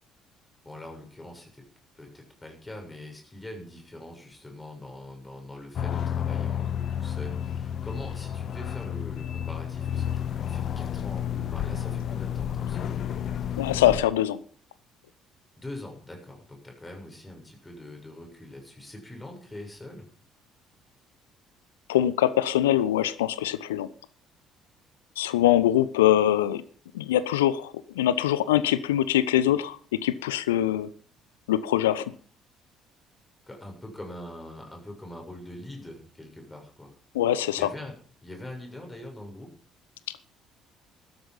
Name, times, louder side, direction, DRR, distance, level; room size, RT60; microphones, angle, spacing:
voice 1, 0.7-1.6 1.9-13.0 15.6-20.1 33.5-36.9 37.6-37.9 38.2-39.5, left 1 dB, 15° left, 2 dB, 7.2 m, -43 dB
sound 1, 5.8-14.0, left 9 dB, 50° left, 1.3 m, -31 dB
voice 2, 13.6-14.4 21.9-23.9 25.2-26.6 26.9-30.9 31.5-32.1 37.1-37.7, left 12 dB, 75° left, 16 dB, 0.9 m, -23 dB
15.0 x 13.0 x 5.5 m, 0.43 s
figure-of-eight pair, 50°, 0 cm